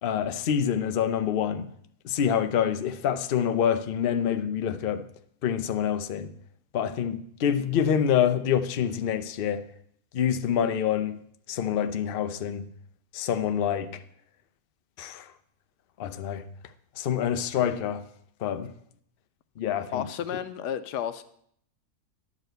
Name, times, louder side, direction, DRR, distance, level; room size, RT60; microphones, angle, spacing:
voice 1, 0.0-1.7 2.0-5.1 5.4-6.3 6.7-9.7 10.1-11.2 11.5-12.7 13.1-14.0 15.0-15.3 16.0-16.5 17.0-18.0 18.4-18.7 19.6-20.1, left 8 dB, 65° left, 0.5 m, -26 dB
voice 2, 19.9-21.2, left 9 dB, 90° left, 1.2 m, -32 dB
11.0 x 4.9 x 7.9 m
omnidirectional pair, 1.7 m